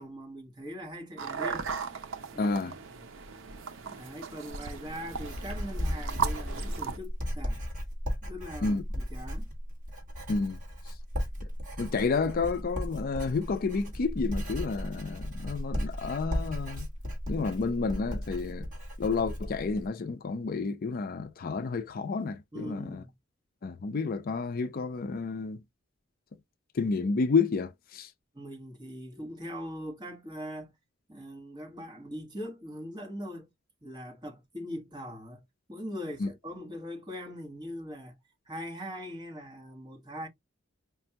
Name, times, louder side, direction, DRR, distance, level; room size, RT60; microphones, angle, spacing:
voice 1, 0.0-1.7 2.3-2.8 3.8-7.7 8.2-9.5 22.5-23.1 28.3-30.7 31.1-33.5 33.8-38.2 38.5-40.3, equal, 20° right, 1.2 m, -41 dB
sound 1, 1.2-7.0, right 6 dB, 70° right, 0.6 m, -36 dB
voice 2, 2.4-2.7 8.6-8.8 10.3-10.6 11.8-16.9 17.3-18.7 19.0-23.0 23.6-25.6 26.7-28.1 36.2-36.3, left 4 dB, 50° left, 0.4 m, -30 dB
Writing, 4.5-19.9, equal, 40° right, 1.9 m, -36 dB
5.1 x 2.3 x 2.8 m
head